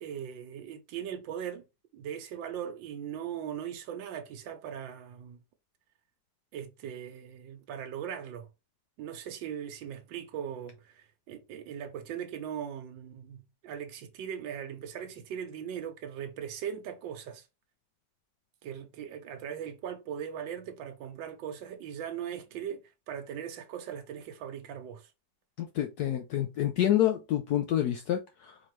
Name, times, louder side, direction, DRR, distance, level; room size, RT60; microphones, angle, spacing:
voice 1, 0.0-1.6 1.9-5.4 6.5-8.5 9.0-17.5 18.6-25.1, right 9 dB, 90° right, 1.4 m, -39 dB
voice 2, 25.6-28.6, left 12 dB, 70° left, 1.0 m, -28 dB
4.3 x 2.9 x 3.0 m
omnidirectional pair, 2.0 m